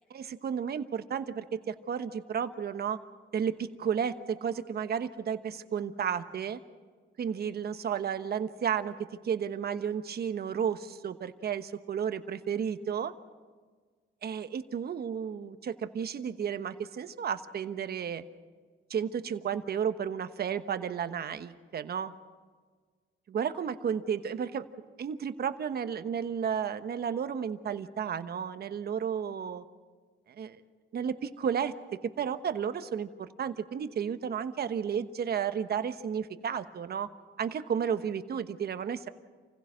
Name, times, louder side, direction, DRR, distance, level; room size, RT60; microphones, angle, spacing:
voice 1, 0.1-3.0 3.3-6.6 7.2-8.9 9.2-13.1 14.2-18.2 18.9-22.1 23.3-24.7 25.0-29.6 30.3-30.6 30.9-31.7 32.0-37.1 37.4-39.1, right 7 dB, 55° right, 10 dB, 1.1 m, -32 dB
28.0 x 16.0 x 6.3 m, 1.5 s
cardioid pair, 90°, 20 cm